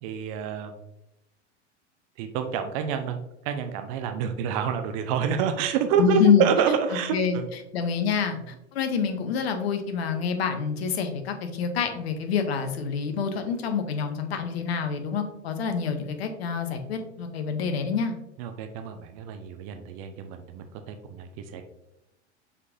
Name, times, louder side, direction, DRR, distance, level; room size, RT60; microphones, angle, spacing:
voice 1, 0.0-0.8 2.2-3.2 3.4-7.5 18.4-21.7, right 6 dB, 30° right, 7 dB, 0.4 m, -27 dB
voice 2, 6.0-6.4 7.1-7.4 7.7-18.1, left 6 dB, 60° left, 6 dB, 0.7 m, -26 dB
5.4 x 3.5 x 2.5 m, 0.90 s
figure-of-eight pair, 80°, 35 cm